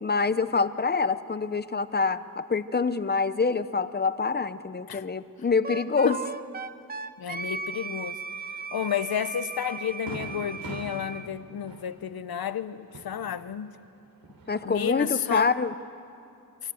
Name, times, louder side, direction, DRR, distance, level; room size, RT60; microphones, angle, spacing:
voice 1, 0.0-6.2 14.5-15.7, left 4 dB, 25° left, 0.7 m, -26 dB
Wind instrument woodwind instrument, 5.6-11.3, right 4 dB, 25° right, 0.7 m, -37 dB
voice 2, 7.2-8.2 8.7-13.7 14.6-15.5, left 9 dB, 80° left, 0.9 m, -31 dB
Fireworks, 9.0-9.2 9.6-9.7 10.1-13.8 14.1-15.0, right 3 dB, 75° right, 3.5 m, -43 dB
29.5 x 23.5 x 7.9 m
wide cardioid pair, 160°, 36 cm